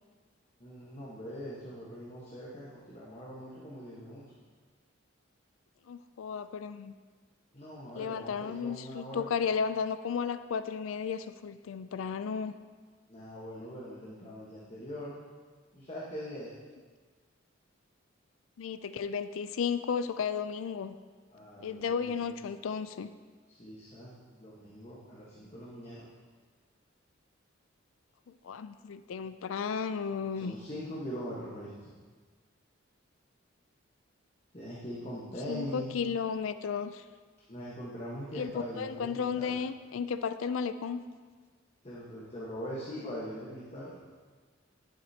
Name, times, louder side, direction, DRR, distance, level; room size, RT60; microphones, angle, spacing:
voice 1, 0.6-4.2 7.5-9.3 13.1-15.2 15.7-16.5 21.3-22.3 23.5-26.0 30.3-31.9 34.5-36.0 37.5-39.5 41.8-44.0, equal, 30° left, -7 dB, 1.3 m, -42 dB
voice 2, 5.9-6.9 7.9-12.5 18.6-20.9 21.6-23.1 28.4-30.5 35.5-37.0 38.3-38.5 38.8-41.0, left 6 dB, 85° left, 12 dB, 0.4 m, -34 dB
11.5 x 7.6 x 2.9 m, 1.5 s
head